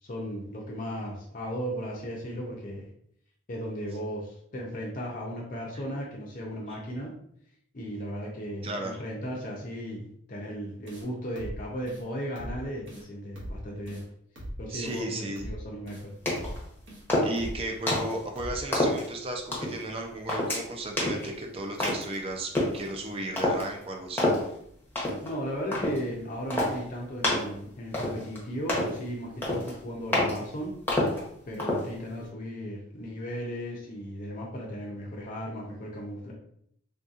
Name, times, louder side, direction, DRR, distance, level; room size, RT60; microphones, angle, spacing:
voice 1, 0.0-2.8 3.5-7.1 7.7-14.0 14.6-16.0 25.2-30.7 31.5-36.3, equal, 40° left, -2 dB, 0.5 m, -36 dB
voice 2, 8.6-9.0 14.7-15.4 17.2-24.3, right 1 dB, 30° right, 2 dB, 0.4 m, -35 dB
sound 1, 10.9-11.1 11.4-11.6 11.9-12.0 12.4-12.6 12.9-13.0 13.4-13.6 13.9-14.0 14.4-14.6 14.9-15.0 15.4-15.6 15.9-16.0 16.4-16.6 16.9-17.0 17.4-17.6 17.9-18.0 18.4-18.6, equal, 65° right, 1.0 m, -40 dB
sound 2, 16.3-16.6 17.1-17.5 17.9-18.2 18.7-19.1 19.5-19.8 20.3-20.6 21.0-21.3 21.8-22.1 22.5-22.8 23.4-23.6 24.2-24.4 25.0-25.3 25.7-26.0 26.5-26.8 27.2-27.5 27.9-28.4 28.7-29.0 29.4-29.7 30.1-30.4 30.9-31.2 31.6-31.9, left 1 dB, 10° left, 0.7 m, -27 dB
3.5 x 2.7 x 2.4 m, 0.68 s
head